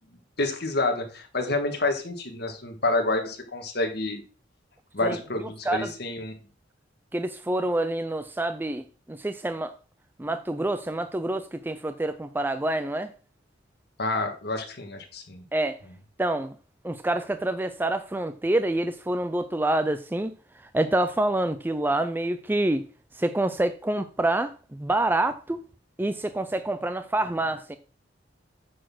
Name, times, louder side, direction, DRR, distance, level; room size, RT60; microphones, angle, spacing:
voice 1, 0.4-4.2 4.9-6.3 14.0-15.4, left 2 dB, 60° left, 1.7 m, -28 dB
voice 2, 7.1-9.7 10.2-13.1 15.5-15.8 16.2-16.6 16.8-22.9 23.1-25.6 26.0-27.8, right 1 dB, 10° right, 0.4 m, -27 dB
9.2 x 4.2 x 6.1 m
head